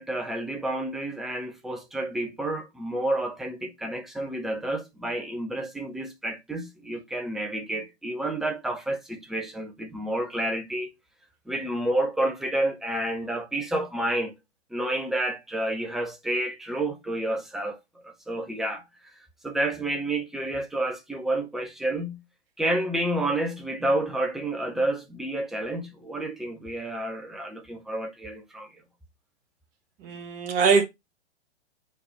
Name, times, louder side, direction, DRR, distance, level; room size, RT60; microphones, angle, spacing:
voice 1, 0.0-10.9 11.5-14.3 14.7-17.8 18.0-18.8 19.4-22.2 22.6-28.7, right 1 dB, ahead, 0.5 m, -29 dB
voice 2, 30.0-30.8, right 5 dB, 20° right, 1.0 m, -22 dB
5.1 x 4.2 x 5.2 m
figure-of-eight pair, 120°, 35 cm